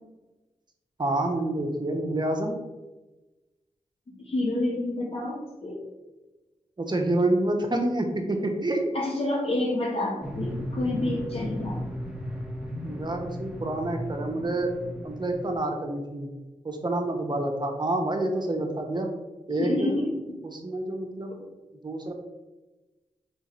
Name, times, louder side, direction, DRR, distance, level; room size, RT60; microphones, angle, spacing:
voice 1, 1.0-2.6 6.8-8.9 12.8-14.7 15.0-16.3 16.6-19.1 19.5-20.0 20.4-21.5 21.8-22.1, right 2 dB, 35° right, 3 dB, 0.8 m, -28 dB
voice 2, 4.1-5.8 8.9-11.8 19.5-20.1, left 1 dB, 50° left, -2 dB, 1.0 m, -28 dB
sound 1, 10.2-15.6, equal, 5° right, 1.0 m, -35 dB
3.6 x 3.4 x 4.2 m, 1.1 s
cardioid pair, 50°, 13 cm